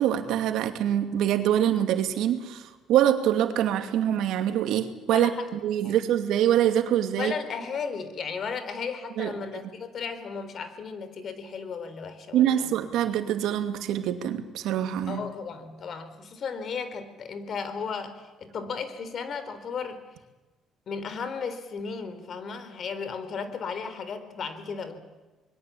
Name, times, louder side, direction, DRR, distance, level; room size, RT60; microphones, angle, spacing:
voice 1, 0.0-7.3 9.2-9.3 12.3-15.2, right 11 dB, 80° right, 7 dB, 2.5 m, -25 dB
voice 2, 5.1-5.5 5.8-6.0 7.2-12.7 15.1-20.0 20.9-25.0, left 5 dB, 55° left, 11 dB, 3.9 m, -35 dB
26.0 x 22.0 x 8.6 m, 1.2 s
cardioid pair, 90°, 0 cm